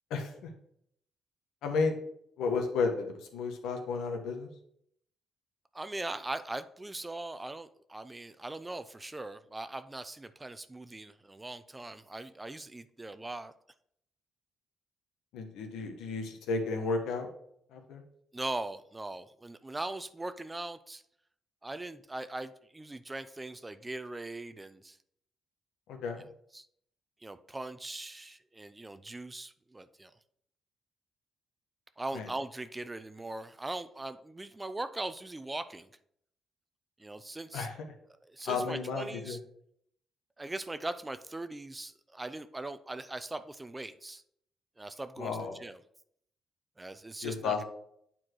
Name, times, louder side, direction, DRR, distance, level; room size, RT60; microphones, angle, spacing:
voice 1, 0.1-0.5 1.6-2.0 2.4-4.5 15.3-17.3 17.7-18.0 25.9-26.2 32.1-32.3 37.5-37.9 38.5-39.4 45.2-45.6 47.2-47.6, left 4 dB, 90° left, 3 dB, 1.5 m, -33 dB
voice 2, 5.7-13.5 18.3-21.0 21.6-25.0 26.5-26.7 27.2-30.2 32.0-35.9 37.0-37.7 38.3-39.4 40.4-44.2 44.8-45.8 46.8-47.6, right 2 dB, 15° right, 12 dB, 0.5 m, -40 dB
8.8 x 4.5 x 4.7 m, 0.69 s
cardioid pair, 90°, 0 cm